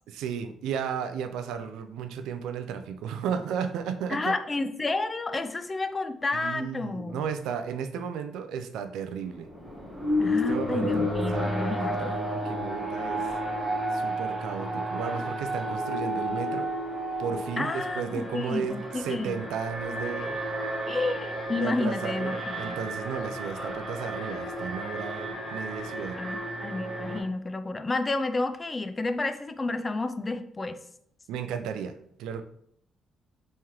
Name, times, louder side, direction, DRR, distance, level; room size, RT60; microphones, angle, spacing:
voice 1, 0.1-4.3 6.3-9.5 10.2-13.2 13.9-16.7 17.2-20.4 21.6-26.2 31.3-31.9 32.2-32.4, right 7 dB, 90° right, 8 dB, 0.3 m, -34 dB
voice 2, 4.1-7.2 10.2-12.1 17.6-19.3 20.9-22.8 26.2-30.8, left 3 dB, 25° left, 9 dB, 0.3 m, -30 dB
Alarm, 9.3-27.2, equal, 5° right, 1.0 m, -32 dB
3.5 x 3.1 x 2.9 m, 0.68 s
cardioid pair, 90°, 0 cm